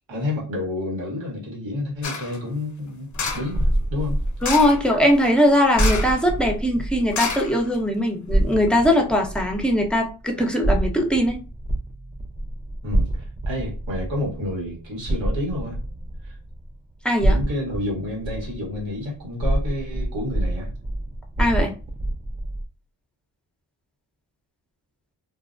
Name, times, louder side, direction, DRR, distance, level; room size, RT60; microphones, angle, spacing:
voice 1, 0.1-4.2 12.8-15.8 16.2-16.4 17.2-20.7, left 1 dB, 85° right, -4 dB, 1.3 m, -29 dB
sound 1, 2.0-2.4 3.1-3.6 4.4-4.9 5.7-6.2 6.5-6.6 7.1-8.0 8.5-8.6, left 5 dB, 40° left, 0.6 m, -29 dB
sound 2, 3.1-7.8 8.3-16.8 17.2-22.6, right 1 dB, 15° right, 0.3 m, -27 dB
voice 2, 4.4-11.4 17.0-17.4 21.4-21.7, left 1 dB, ahead, 1 dB, 0.7 m, -20 dB
2.4 x 2.1 x 2.5 m, 0.34 s
cardioid pair, 50°, 44 cm